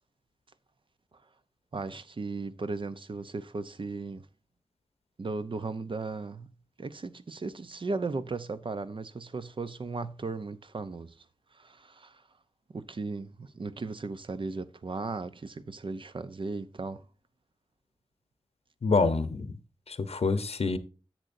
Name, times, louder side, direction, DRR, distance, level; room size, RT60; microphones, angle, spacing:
voice 1, 1.7-4.3 5.2-6.5 6.8-11.2 11.5-12.2 12.7-17.0, right 3 dB, 50° right, 0.6 m, -36 dB
voice 2, 18.8-19.5 19.9-20.8, left 4 dB, 70° left, 0.8 m, -26 dB
10.5 x 7.7 x 2.6 m
wide cardioid pair, 95°, 11 cm